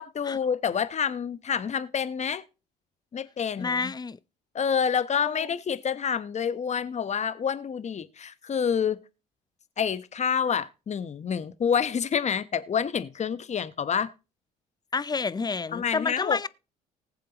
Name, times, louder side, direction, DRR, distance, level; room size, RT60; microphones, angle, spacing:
voice 1, 0.0-2.4 3.1-3.9 4.5-9.0 9.8-14.1 15.7-16.5, left 7 dB, 35° left, 1.0 m, -28 dB
voice 2, 3.6-4.2 5.2-5.4 14.9-16.5, left 4 dB, 20° left, 0.6 m, -29 dB
19.5 x 7.4 x 2.9 m
hypercardioid pair, 60°, 19 cm